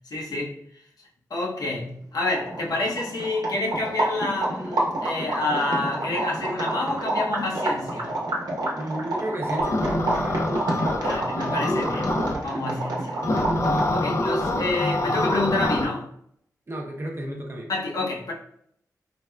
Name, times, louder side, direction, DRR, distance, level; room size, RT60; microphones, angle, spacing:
voice 1, 0.1-0.6 1.3-8.1 11.0-12.1 12.4-13.2 13.9-16.1 17.7-18.3, left 2 dB, 70° left, -3 dB, 0.8 m, -28 dB
sound 1, 2.0-2.1 2.3-14.0, right 2 dB, 80° right, 0.7 m, -28 dB
voice 2, 8.7-11.4 16.7-17.7, right 1 dB, 35° right, 0 dB, 0.7 m, -33 dB
sound 2, 9.6-12.4 13.2-15.9, left 1 dB, 45° left, 0.4 m, -25 dB
3.4 x 2.1 x 2.2 m, 0.67 s
cardioid pair, 60°, 7 cm